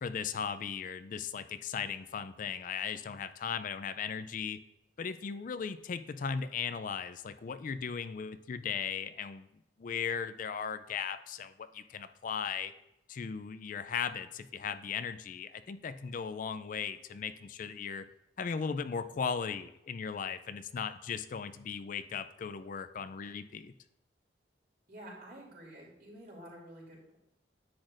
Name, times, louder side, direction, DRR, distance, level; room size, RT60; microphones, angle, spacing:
voice 1, 0.0-4.6 5.0-9.5 9.8-12.7 13.1-18.0 18.4-23.7, left 6 dB, 45° left, 11 dB, 0.4 m, -37 dB
voice 2, 24.9-27.2, right 1 dB, 60° right, -3 dB, 2.8 m, -49 dB
10.5 x 7.9 x 2.5 m, 0.86 s
head